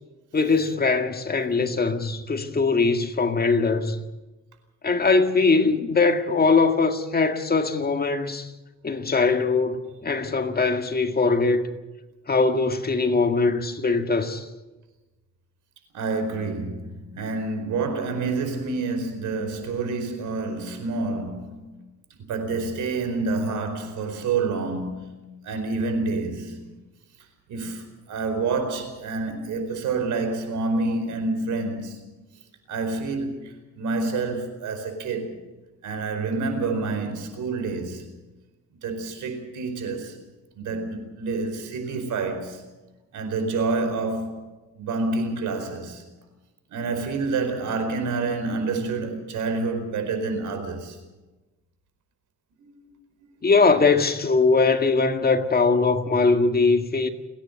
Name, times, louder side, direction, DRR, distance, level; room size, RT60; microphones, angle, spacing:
voice 1, 0.3-4.0 4.8-8.5 8.8-11.7 12.3-14.4 53.4-57.1, left 4 dB, 30° left, 1.9 m, -21 dB
voice 2, 15.9-21.7 22.2-25.2 25.4-26.7 27.5-32.0 32.7-35.4 35.8-38.0 38.8-40.2 40.6-42.6 43.1-44.4 44.7-46.0 46.7-51.0 52.6-52.9 53.2-53.5, right 3 dB, 80° right, 4.7 m, -28 dB
29.5 x 10.0 x 9.1 m
cardioid pair, 90°, 30 cm